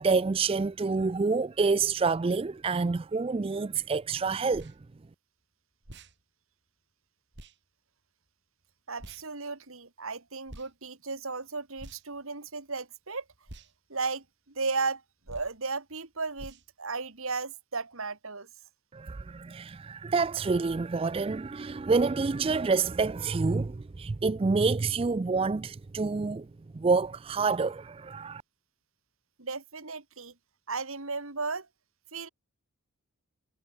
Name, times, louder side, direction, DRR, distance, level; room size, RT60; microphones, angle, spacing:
voice 1, 0.0-4.7 18.9-26.5 26.7-28.4, right 4 dB, 25° right, 0.3 m, -27 dB
sound 1, 4.5-4.8 5.8-6.1 7.3-7.5 9.0-9.2 10.5-10.7 11.7-12.2 13.5-13.7 15.2-15.6 16.4-16.7, right 1 dB, 50° right, 4.1 m, -47 dB
voice 2, 8.9-13.2 13.9-15.0 15.3-18.5 29.4-30.3 30.7-31.7 32.1-32.3, right 4 dB, 70° right, 2.4 m, -35 dB
head